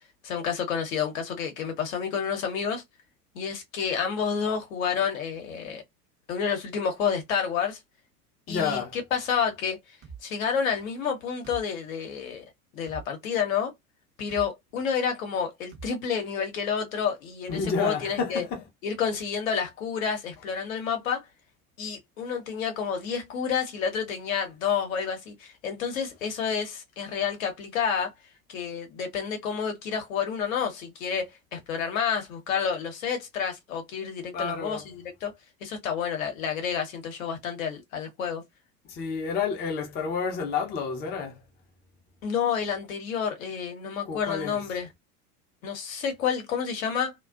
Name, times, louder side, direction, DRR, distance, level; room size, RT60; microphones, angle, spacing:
voice 1, 0.2-2.8 3.3-5.8 6.3-7.8 8.5-9.8 10.2-12.5 12.7-13.7 14.2-18.4 18.8-21.2 21.8-28.1 28.5-35.3 35.6-38.4 42.2-44.9 45.6-47.1, left 7 dB, 55° left, 0.9 m, -29 dB
voice 2, 8.5-9.0 17.5-18.6 34.3-34.8 38.9-41.4 44.0-44.6, left 5 dB, 20° left, 0.6 m, -30 dB
sound 1, 10.0-10.2 11.4-11.6 12.9-13.1 14.3-14.5 15.7-15.9, right 6 dB, 25° right, 0.6 m, -42 dB
2.4 x 2.2 x 2.3 m
figure-of-eight pair, 85°, 47 cm